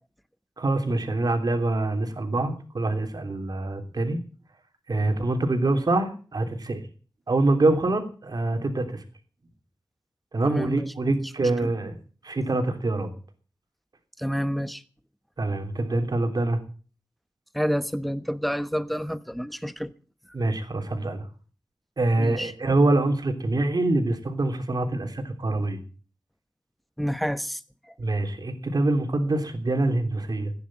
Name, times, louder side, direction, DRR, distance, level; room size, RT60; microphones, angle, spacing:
voice 1, 0.6-4.2 4.9-6.8 7.3-9.0 10.3-12.0 12.2-13.1 15.4-16.6 20.3-21.3 22.0-25.8 28.0-30.5, right 2 dB, 60° right, 3.2 m, -25 dB
voice 2, 10.4-11.2 11.6-11.7 14.2-14.8 17.5-19.9 22.2-22.5 27.0-27.6, equal, ahead, 1.1 m, -29 dB
15.5 x 10.5 x 7.5 m
wide cardioid pair, 65°, 8 cm